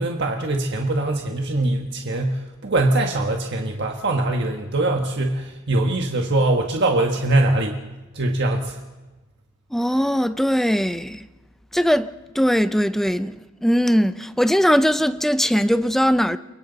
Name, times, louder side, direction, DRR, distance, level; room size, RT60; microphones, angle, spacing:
voice 1, 0.0-7.8 8.1-8.8, right 2 dB, 55° right, 1.5 m, -22 dB
voice 2, 9.7-11.3 11.7-16.4, equal, ahead, 0.6 m, -20 dB
29.5 x 23.0 x 4.1 m
head